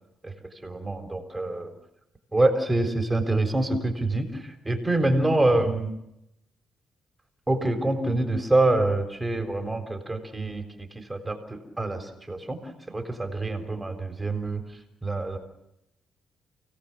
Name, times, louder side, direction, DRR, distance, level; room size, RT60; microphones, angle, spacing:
voice 1, 0.2-1.7 2.3-6.0 7.5-15.4, right 2 dB, 15° right, 5 dB, 3.9 m, -26 dB
30.0 x 18.0 x 7.3 m, 0.85 s
cardioid pair, 85°, 0 cm